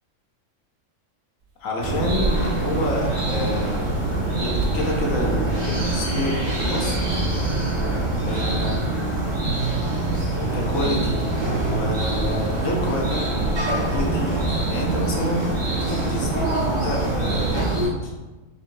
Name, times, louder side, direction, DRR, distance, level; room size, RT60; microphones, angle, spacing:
sound 1, 1.4-1.5 1.8-3.5 4.2-5.6 6.1-6.2 7.1-8.2 9.2-9.3 12.4-14.1 14.8-14.9, right 2 dB, 80° right, 0.4 m, -31 dB
voice 1, 1.6-7.0 8.2-8.9 10.5-11.3 11.6-13.1 13.9-17.7 18.0-18.1, left 1 dB, 80° left, -1 dB, 1.2 m, -28 dB
sound 2, 1.8-17.9, right 2 dB, 20° right, 1.0 m, -24 dB
4.0 x 3.6 x 2.6 m, 1.2 s
omnidirectional pair, 1.4 m